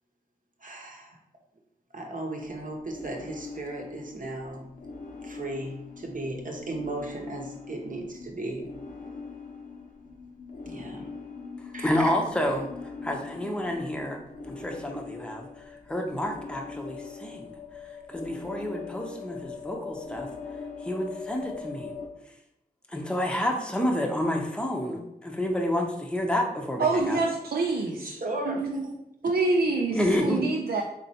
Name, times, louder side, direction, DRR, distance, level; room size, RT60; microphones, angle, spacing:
voice 1, 0.6-1.2 1.9-4.7 5.2-8.7 10.7-11.1 11.7-12.1 27.9-29.0, right 2 dB, 55° right, 1 dB, 0.9 m, -36 dB
sound 1, 2.4-22.1, left 5 dB, 55° left, 0.7 m, -42 dB
voice 2, 11.8-14.2 14.4-17.5 18.1-20.3 20.8-21.9 22.9-27.2 29.9-30.4, left 1 dB, 5° left, 1 dB, 0.7 m, -29 dB
voice 3, 26.8-28.1 28.5-28.8 29.2-30.8, right 3 dB, 70° right, 0 dB, 0.4 m, -26 dB
4.1 x 3.0 x 2.8 m, 0.83 s
cardioid pair, 45°, 16 cm